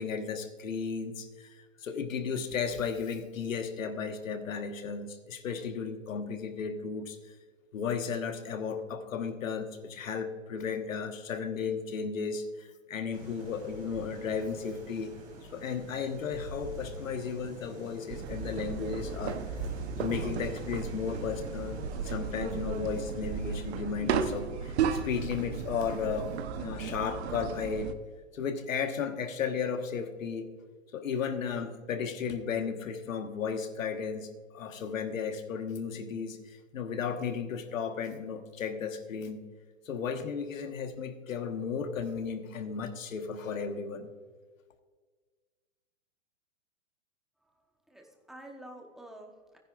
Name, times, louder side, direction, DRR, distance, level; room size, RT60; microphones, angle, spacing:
voice 1, 0.0-7.3 7.7-15.1 15.5-19.4 20.0-26.3 26.6-27.9 28.3-30.5 30.9-39.5 39.8-44.1, left 6 dB, 85° left, 8 dB, 1.4 m, -34 dB
sound 1, 13.1-23.8, right 1 dB, 20° right, 2.4 m, -47 dB
sound 2, 18.1-27.9, right 7 dB, 55° right, 0.9 m, -34 dB
voice 2, 47.4-49.6, right 1 dB, ahead, 2 dB, 0.9 m, -49 dB
15.5 x 10.0 x 2.4 m, 1.5 s
hypercardioid pair, 145°, 39 cm